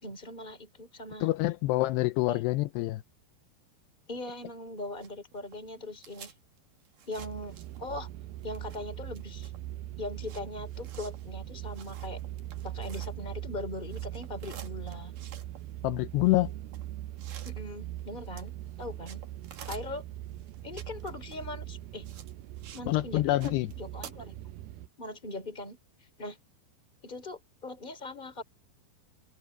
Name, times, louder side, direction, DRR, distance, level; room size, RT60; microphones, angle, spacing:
voice 1, 0.0-1.3 2.3-2.4 4.1-6.3 7.1-8.1 8.4-9.5 10.0-12.2 12.6-15.1 17.4-18.5 18.8-19.2 19.6-20.0 20.6-22.1 22.7-24.3 25.0-25.8 26.2-26.4 27.0-28.4, left 2 dB, 10° left, 3.1 m, -40 dB
voice 2, 1.2-3.0 15.8-16.5 22.9-23.7, left 18 dB, 80° left, 2.7 m, -26 dB
sound 1, 4.8-8.1 8.4-13.5 13.8-22.9 23.2-24.1, right 8 dB, 55° right, 3.2 m, -51 dB
sound 2, 7.1-24.9, right 14 dB, 80° right, 2.2 m, -41 dB
omnidirectional pair, 5.0 m